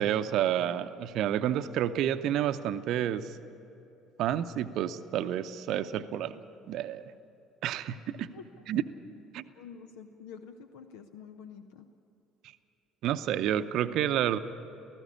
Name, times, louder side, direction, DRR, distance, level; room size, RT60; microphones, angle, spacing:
voice 1, 0.0-3.4 4.2-6.4 6.7-7.1 7.6-8.3 8.7-8.8 9.3-9.4 13.0-14.4, right 11 dB, 55° right, 11 dB, 0.7 m, -29 dB
voice 2, 8.3-8.7 9.5-11.9, left 6 dB, 70° left, 9 dB, 0.7 m, -48 dB
18.0 x 15.0 x 9.8 m, 2.9 s
figure-of-eight pair, 55°, 0 cm